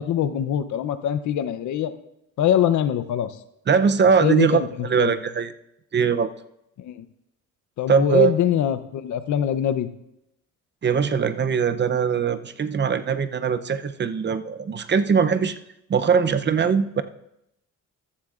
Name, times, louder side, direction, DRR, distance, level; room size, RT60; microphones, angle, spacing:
voice 1, 0.0-1.9 2.4-3.3 4.2-4.5 4.8-5.1 6.8-7.1 7.8-9.9, left 10 dB, 70° left, 11 dB, 0.8 m, -23 dB
voice 2, 3.7-5.5 5.9-6.3 7.9-8.3 10.8-15.6 15.9-17.0, right 6 dB, 35° right, 11 dB, 0.7 m, -21 dB
14.0 x 13.0 x 2.5 m, 0.81 s
cardioid pair, 90°, 30 cm